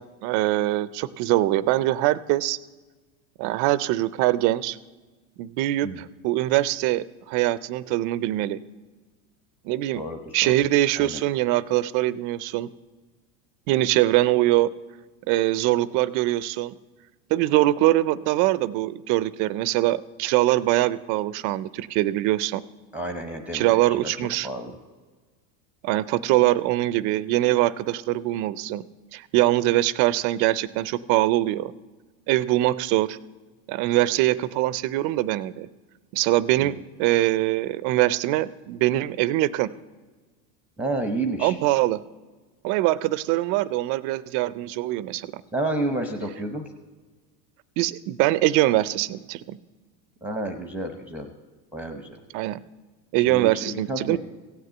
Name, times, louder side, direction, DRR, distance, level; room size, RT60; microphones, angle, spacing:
voice 1, 0.0-2.6 3.4-4.8 5.4-8.6 9.7-10.0 10.3-12.7 13.7-14.7 15.3-16.7 17.3-22.6 23.5-24.5 25.8-28.8 29.1-31.7 32.3-33.2 33.7-35.7 36.1-39.7 41.4-42.0 42.6-45.4 47.8-49.6 52.3-52.6 53.1-54.2, right 16 dB, 40° right, 17 dB, 0.4 m, -23 dB
voice 2, 9.9-10.6 11.0-11.2 22.9-24.8 36.6-36.7 40.8-41.5 45.5-46.7 50.2-51.3 51.7-52.2 53.3-54.2, right 2 dB, 5° right, 5 dB, 0.7 m, -30 dB
15.5 x 6.7 x 8.8 m, 1.3 s
supercardioid pair, 135°, 48 cm